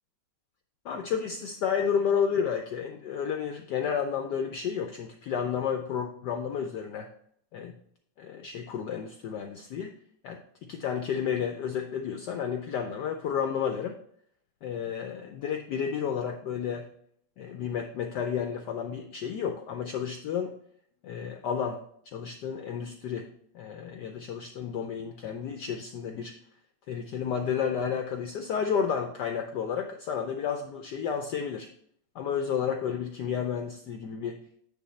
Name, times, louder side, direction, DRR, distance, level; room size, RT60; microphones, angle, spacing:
voice 1, 0.8-7.1 7.5-7.7 8.2-9.9 10.2-14.0 14.6-16.9 17.4-20.5 21.0-21.8 22.1-23.3 23.5-26.3 26.9-31.7 32.1-34.4, left 7 dB, 80° left, 5 dB, 0.9 m, -31 dB
9.4 x 3.4 x 4.3 m, 0.66 s
omnidirectional pair, 2.4 m